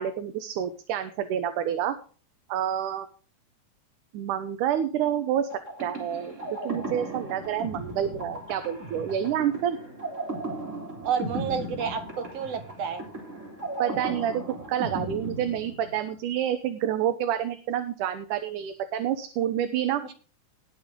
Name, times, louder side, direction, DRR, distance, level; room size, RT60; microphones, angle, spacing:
voice 1, 0.0-2.0 2.5-3.1 4.1-5.5 5.8-9.8 13.8-14.4 14.7-20.0, right 10 dB, 80° right, 8 dB, 2.5 m, -28 dB
sound 1, 5.5-16.2, right 2 dB, 20° right, 3.8 m, -36 dB
voice 2, 11.0-13.0, right 7 dB, 60° right, 8 dB, 2.4 m, -30 dB
19.0 x 7.0 x 3.7 m, 0.38 s
omnidirectional pair, 3.6 m